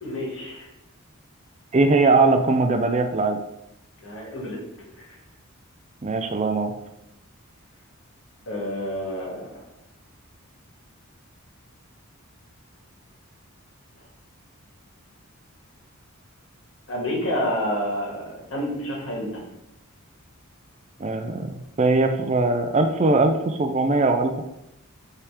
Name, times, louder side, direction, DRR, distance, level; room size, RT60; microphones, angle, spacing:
voice 1, 0.0-0.7 4.0-4.6 5.0-5.1 8.5-9.6 16.9-19.4, equal, 60° left, -3 dB, 2.0 m, -29 dB
voice 2, 1.7-3.4 6.0-6.7 21.0-24.4, right 3 dB, 30° right, 6 dB, 0.4 m, -21 dB
5.6 x 3.5 x 4.9 m, 0.85 s
head